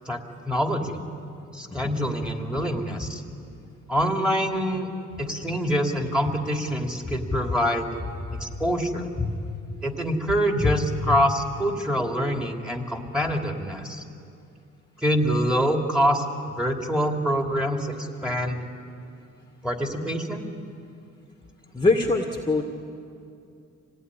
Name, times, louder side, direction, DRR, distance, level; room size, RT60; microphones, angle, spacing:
voice 1, 0.4-1.0 1.5-3.2 3.9-4.9 5.2-8.0 8.3-9.1 9.8-14.0 15.0-16.2 16.6-18.6 19.6-20.4, equal, 5° right, 2 dB, 3.0 m, -25 dB
voice 2, 21.7-22.6, left 3 dB, 15° left, 1 dB, 1.9 m, -23 dB
26.5 x 18.5 x 9.9 m, 2.5 s
cardioid pair, 90°, 30 cm